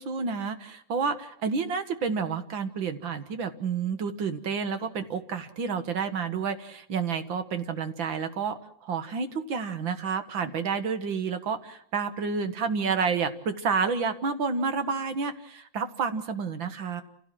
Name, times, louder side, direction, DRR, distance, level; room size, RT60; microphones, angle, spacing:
voice 1, 0.0-17.0, right 5 dB, 75° right, 9 dB, 2.2 m, -30 dB
28.5 x 16.5 x 7.6 m, 0.67 s
omnidirectional pair, 2.1 m